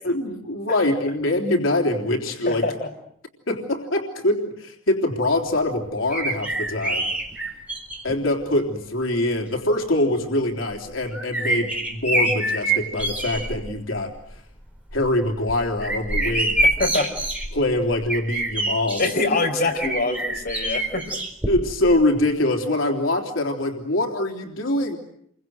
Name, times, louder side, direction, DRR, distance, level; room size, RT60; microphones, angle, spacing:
voice 1, 0.0-2.7 3.5-7.1 8.0-14.4 14.9-16.6 17.5-19.0 21.5-25.0, left 1 dB, 90° left, 3 dB, 3.6 m, -24 dB
voice 2, 2.5-2.9 16.8-17.1 19.0-21.1, left 2 dB, 50° left, 2 dB, 4.9 m, -24 dB
sound 1, 6.1-8.2 9.0-9.1 10.7-13.6 14.0-14.4 14.8-19.1 19.8-21.9 22.2-22.3, right 1 dB, 5° right, 4.4 m, -26 dB
29.5 x 24.0 x 7.9 m, 0.68 s
head